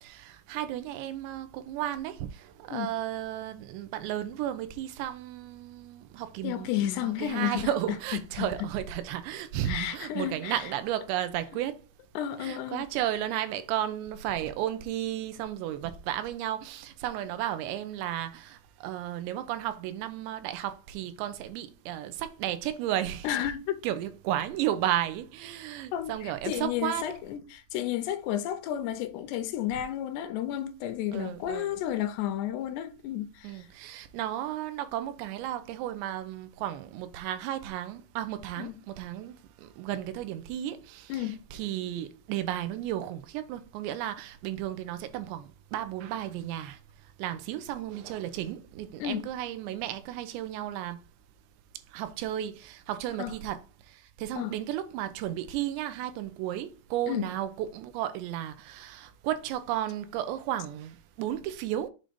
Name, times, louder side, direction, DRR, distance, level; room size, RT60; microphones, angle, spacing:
voice 1, 0.0-11.9 12.4-23.3 23.8-27.1 31.1-31.8 33.4-46.8 47.2-51.0 51.9-61.9, right 12 dB, 90° right, 2.8 m, -34 dB
voice 2, 6.4-7.7 8.1-8.5 9.7-10.6 12.2-12.9 23.2-23.8 25.9-33.7 38.6-38.8 41.1-41.4 49.0-49.2 53.2-53.3 54.4-54.6 57.1-57.3, left 11 dB, 85° left, 2.6 m, -32 dB
7.6 x 2.6 x 5.0 m
omnidirectional pair, 5.0 m